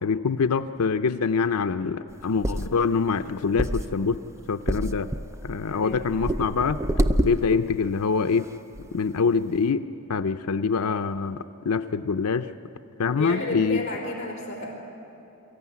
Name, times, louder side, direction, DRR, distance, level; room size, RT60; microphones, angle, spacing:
voice 1, 0.0-4.2 4.5-5.1 5.4-6.8 7.2-8.5 8.9-9.8 10.1-12.5 13.0-13.8, left 5 dB, 80° left, 9 dB, 0.5 m, -25 dB
sound 1, 2.1-7.9 8.4-8.5 8.8-8.9, right 1 dB, 15° right, 0.4 m, -28 dB
voice 2, 5.7-6.0 13.1-14.7, left 1 dB, 30° left, -2 dB, 4.0 m, -32 dB
23.5 x 14.5 x 9.5 m, 2.9 s
head